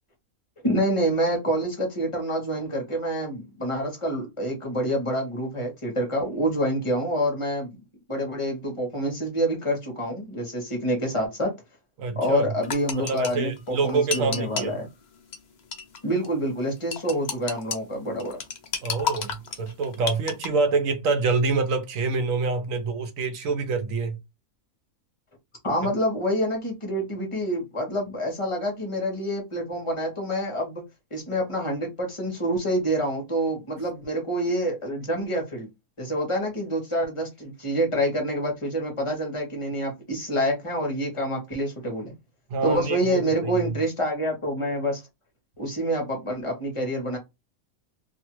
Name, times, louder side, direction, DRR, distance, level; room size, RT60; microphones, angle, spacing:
voice 1, 0.6-7.8 8.1-11.5 12.2-14.9 16.0-18.4 25.6-30.8 31.1-35.7 36.0-42.1 42.6-45.0 45.6-47.2, equal, 25° left, 0.9 m, -27 dB
voice 2, 12.0-12.5 13.0-14.7 18.8-24.2 42.5-43.7, right 4 dB, 70° right, 1.0 m, -26 dB
sound 1, 12.6-14.8 15.3-15.4 15.7-16.3 16.9-17.8 18.2-20.5, left 6 dB, 85° left, 0.4 m, -31 dB
2.7 x 2.4 x 2.9 m
omnidirectional pair, 1.5 m